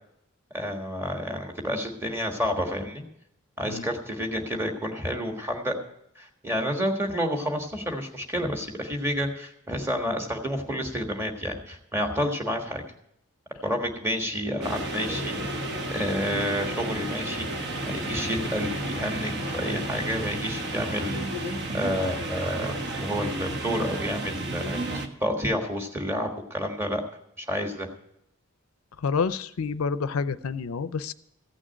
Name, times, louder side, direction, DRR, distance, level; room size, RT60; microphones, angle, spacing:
voice 1, 0.5-3.0 3.6-5.8 6.1-12.8 13.6-15.6 15.9-27.0 27.4-27.9, equal, 10° right, 3 dB, 1.5 m, -30 dB
sound 1, 14.6-25.1, right 1 dB, 50° right, 1.3 m, -32 dB
voice 2, 29.0-31.1, left 5 dB, 90° left, 13 dB, 0.5 m, -28 dB
15.5 x 6.2 x 8.9 m, 0.77 s
head